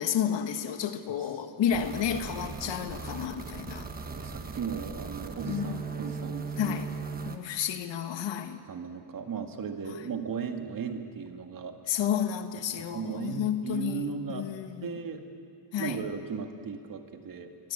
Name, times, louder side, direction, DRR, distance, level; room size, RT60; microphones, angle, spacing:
voice 1, 0.0-3.9 5.5-5.8 6.6-6.9 7.2-8.6 11.9-14.9 15.7-16.0 17.6-17.7, left 8 dB, 60° left, 1.6 m, -31 dB
industrial blower recording, 1.7-7.4, right 4 dB, 20° right, 1.3 m, -38 dB
voice 2, 4.2-6.8 8.7-11.7 12.8-14.5 14.8-15.3 15.8-17.5, right 6 dB, 40° right, 2.0 m, -36 dB
24.5 x 23.5 x 8.8 m
cardioid pair, 180°, 49 cm